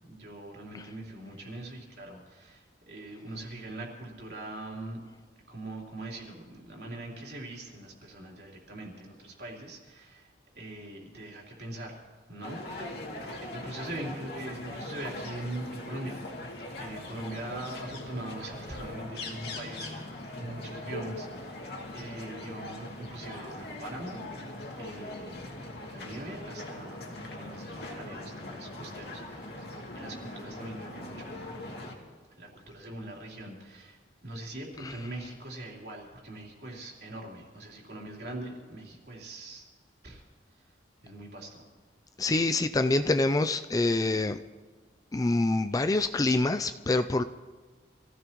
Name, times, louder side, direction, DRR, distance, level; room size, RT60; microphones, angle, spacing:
voice 1, 0.1-5.0 5.5-12.0 12.3-13.1 13.5-16.2 16.8-21.6 21.9-24.2 24.8-29.7 29.9-31.6 32.4-39.7 40.0-40.2 41.0-41.6, right 1 dB, 55° right, -2 dB, 3.6 m, -42 dB
sound 1, 12.4-31.9, left 1 dB, 60° left, 2.5 m, -41 dB
voice 2, 42.2-44.4 45.1-47.2, left 2 dB, 20° left, 10 dB, 0.3 m, -26 dB
26.0 x 16.0 x 3.1 m, 1.5 s
head